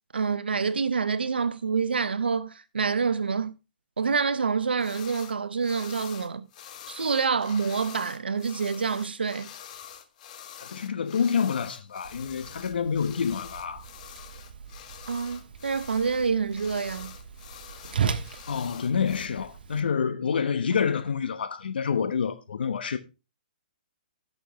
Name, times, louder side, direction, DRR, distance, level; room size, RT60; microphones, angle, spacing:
voice 1, 0.1-3.5 4.0-6.5 6.9-9.5 15.1-17.1, right 5 dB, 85° right, 0.7 m, -27 dB
sound 1, 4.8-5.3 5.6-19.3, left 9 dB, 50° left, 1.5 m, -46 dB
voice 2, 10.6-13.9 18.5-23.0, left 6 dB, 75° left, 1.1 m, -27 dB
Whoosh swoosh swish, 12.0-19.8, right 7 dB, 70° right, 1.3 m, -37 dB
17.5 x 6.4 x 3.1 m
hypercardioid pair, 135°, 5 cm